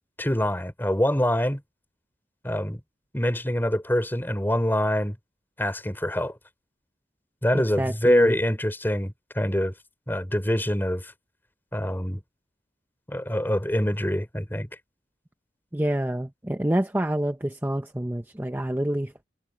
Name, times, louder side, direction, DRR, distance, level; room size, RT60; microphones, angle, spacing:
voice 1, 0.2-1.6 2.4-2.8 3.1-5.2 5.6-6.4 7.4-9.7 10.1-11.1 11.7-12.2 13.1-14.7, equal, 10° left, 4.0 m, -25 dB
voice 2, 7.5-8.4 15.7-19.1, right 1 dB, 10° right, 0.7 m, -27 dB
head